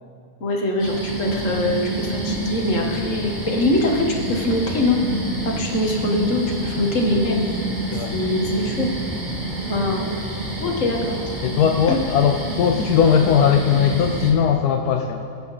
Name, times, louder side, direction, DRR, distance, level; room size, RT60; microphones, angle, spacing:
voice 1, 0.4-5.0 5.5-7.5 8.1-8.9 9.7-10.1 10.6-11.2 11.9-12.0, left 1 dB, 55° left, 1 dB, 1.8 m, -23 dB
sound 1, 0.8-14.3, right 1 dB, 30° right, 2.4 m, -28 dB
voice 2, 3.0-3.3 7.9-8.1 11.4-15.2, left 7 dB, 80° left, 5 dB, 1.2 m, -19 dB
23.5 x 8.1 x 4.2 m, 2.4 s
omnidirectional pair, 1.7 m